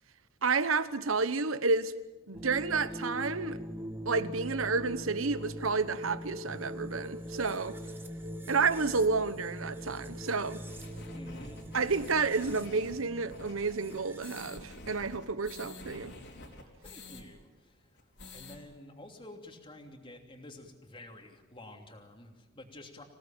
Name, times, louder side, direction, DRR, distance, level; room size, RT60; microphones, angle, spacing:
voice 1, 0.4-1.9 2.3-3.6 4.0-7.8 8.5-10.6 11.7-16.1, right 4 dB, 85° right, 1.1 m, -30 dB
sound 1, 2.3-14.6, equal, 10° right, 1.6 m, -42 dB
sound 2, 10.7-17.2 17.6-17.7 18.0-18.6, left 2 dB, 60° left, 3.9 m, -48 dB
voice 2, 11.1-11.6 16.5-23.0, left 1 dB, 25° left, 3.0 m, -50 dB
27.0 x 17.5 x 9.1 m
head